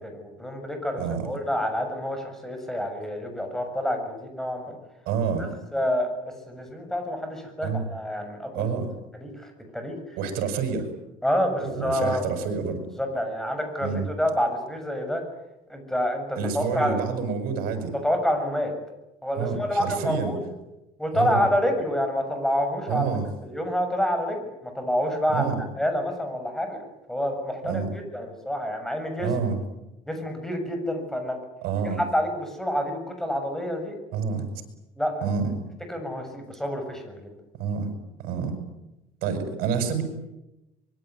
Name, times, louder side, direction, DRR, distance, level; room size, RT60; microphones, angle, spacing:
voice 1, 0.0-4.8 5.4-8.7 9.2-10.2 11.2-12.2 13.0-15.2 15.7-17.0 17.9-18.7 19.2-20.4 21.0-23.0 23.4-26.8 27.1-29.3 30.1-31.4 32.0-34.0 35.0-35.3 35.9-37.4, equal, 5° left, 5 dB, 6.9 m, -28 dB
voice 2, 1.0-1.3 5.1-5.5 7.6-7.8 8.5-8.9 10.2-10.9 11.6-12.8 13.8-14.1 16.4-17.9 19.3-20.4 21.1-21.4 22.9-23.3 25.3-25.5 27.6-27.9 29.2-29.6 31.6-32.0 34.1-34.5 35.2-35.5 37.6-37.9 38.2-38.5 39.2-40.0, right 6 dB, 80° right, 7 dB, 7.6 m, -28 dB
25.0 x 23.5 x 9.6 m, 0.95 s
cardioid pair, 150°, 15 cm